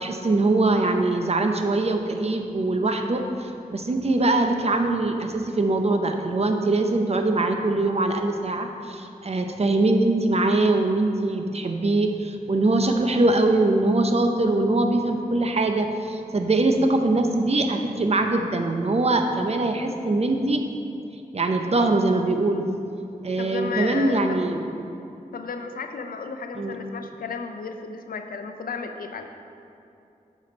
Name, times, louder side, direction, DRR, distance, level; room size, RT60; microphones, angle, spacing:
voice 1, 0.0-20.6 21.3-22.7 23.2-24.6 26.5-26.8, right 2 dB, 45° right, 5 dB, 0.8 m, -22 dB
voice 2, 23.4-24.4 25.3-29.3, left 5 dB, 85° left, 6 dB, 0.6 m, -33 dB
8.3 x 6.4 x 4.0 m, 2.7 s
cardioid pair, 55°, 15 cm